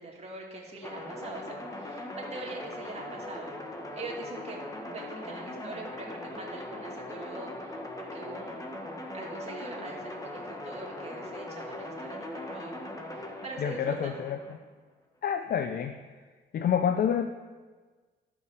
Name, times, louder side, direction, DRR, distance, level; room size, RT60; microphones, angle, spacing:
voice 1, 0.0-3.6 3.9-8.7 9.1-12.8 13.1-14.2, right 2 dB, 30° right, -3 dB, 2.5 m, -43 dB
sound 1, 0.8-14.5, left 1 dB, 15° left, 1.3 m, -40 dB
voice 2, 13.6-14.4 15.2-16.0 16.5-17.3, left 8 dB, 50° left, 9 dB, 0.5 m, -28 dB
12.5 x 5.7 x 4.7 m, 1.4 s
cardioid pair, 90°, 20 cm